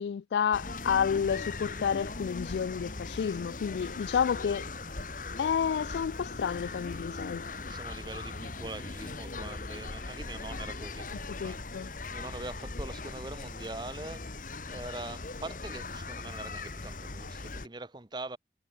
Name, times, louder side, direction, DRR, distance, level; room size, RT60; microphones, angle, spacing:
voice 1, 0.0-4.7 5.4-7.5 11.3-11.9, left 7 dB, 70° left, 0.3 m, -30 dB
sound 1, 0.5-17.7, left 3 dB, 45° left, 1.4 m, -39 dB
sound 2, 1.2-17.6, equal, 15° left, 5.9 m, -65 dB
voice 2, 7.6-11.6 12.1-14.3 14.6-18.4, right 2 dB, 25° right, 0.9 m, -43 dB
head